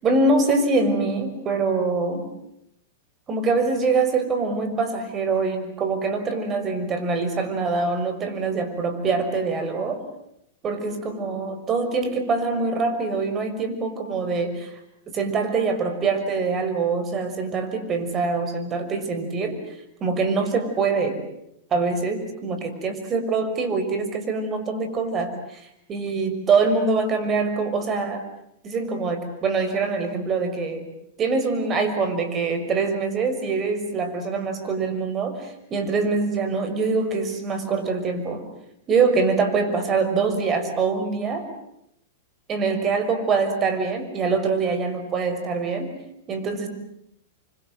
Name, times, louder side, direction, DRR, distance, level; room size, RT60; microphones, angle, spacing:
voice 1, 0.0-2.3 3.3-10.0 10.6-14.8 15.1-19.6 20.0-21.2 21.7-28.2 28.6-30.9 31.2-38.5 38.9-41.4 42.5-45.9 46.3-46.7, right 4 dB, 25° right, 8 dB, 6.1 m, -24 dB
29.0 x 25.5 x 7.7 m, 0.77 s
hypercardioid pair, 115°, 0 cm